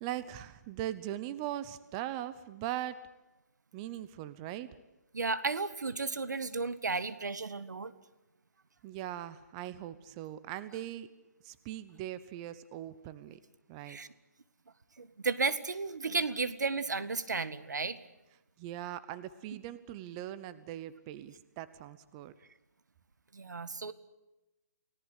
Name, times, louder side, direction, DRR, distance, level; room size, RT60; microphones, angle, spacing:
voice 1, 0.0-3.0 3.7-4.7 8.8-11.1 11.4-13.4 13.7-14.0 18.6-22.3, right 13 dB, 20° right, 15 dB, 0.9 m, -40 dB
voice 2, 5.1-7.9 13.9-14.1 15.0-18.0 23.3-23.9, right 4 dB, 85° right, 14 dB, 1.8 m, -33 dB
29.5 x 18.0 x 8.3 m, 0.99 s
hypercardioid pair, 160°, 9 cm